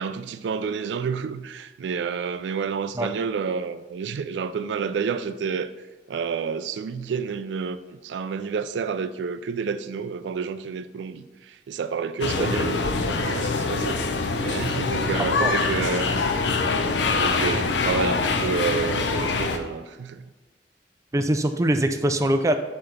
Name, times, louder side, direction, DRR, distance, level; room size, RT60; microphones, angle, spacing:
voice 1, 0.0-5.7 6.1-16.3 17.2-20.2, right 6 dB, 80° right, 0.3 m, -29 dB
sound 1, 12.2-19.6, left 4 dB, 85° left, 0.6 m, -24 dB
voice 2, 12.4-12.7 15.4-15.5 21.1-22.5, right 1 dB, 20° right, 0.4 m, -23 dB
5.6 x 4.5 x 5.1 m
head